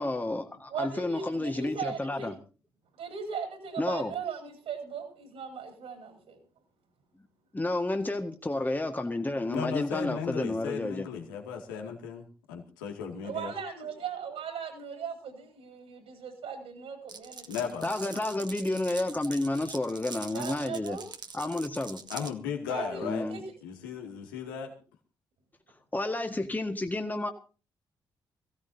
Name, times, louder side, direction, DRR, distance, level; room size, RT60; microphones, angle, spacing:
voice 1, 0.0-2.3 3.8-4.1 7.5-11.1 17.8-21.0 21.3-22.0 23.0-23.4 25.9-27.3, left 2 dB, 15° left, 5 dB, 1.7 m, -31 dB
voice 2, 0.7-2.3 3.0-6.4 13.2-17.5 18.1-18.4 20.3-21.1 22.7-23.4, right 6 dB, 65° right, 4 dB, 4.3 m, -38 dB
voice 3, 9.5-13.5 17.5-17.9 22.1-23.3 23.6-24.7, left 6 dB, 85° left, 2 dB, 2.2 m, -36 dB
Glass, 17.1-22.3, right 5 dB, 40° right, 1.4 m, -44 dB
22.5 x 16.0 x 2.8 m, 0.34 s
hypercardioid pair, 40°, 11 cm